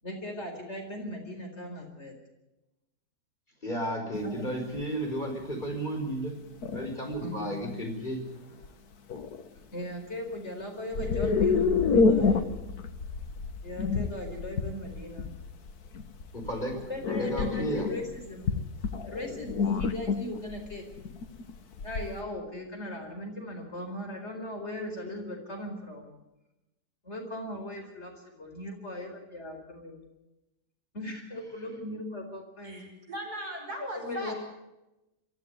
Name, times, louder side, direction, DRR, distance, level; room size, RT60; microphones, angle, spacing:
voice 1, 0.0-2.1 4.2-4.4 7.2-7.6 9.7-12.5 13.6-15.3 16.7-18.6 19.1-20.8 21.8-26.1 27.0-28.1 28.4-30.0 30.9-32.8 33.9-34.3, left 1 dB, 45° left, 3 dB, 4.8 m, -38 dB
voice 2, 3.6-6.3 6.7-8.7 16.3-16.8 17.1-17.9, right 1 dB, 30° left, 2 dB, 5.1 m, -33 dB
sound 1, 4.1-4.2 4.8-5.0 5.6-5.7 6.6-7.3 8.6-8.7 9.1-9.5 10.9-22.2, left 4 dB, 75° left, 1.9 m, -28 dB
voice 3, 32.6-34.3, equal, 75° right, 1 dB, 6.4 m, -38 dB
23.0 x 15.0 x 9.8 m, 0.98 s
omnidirectional pair, 1.6 m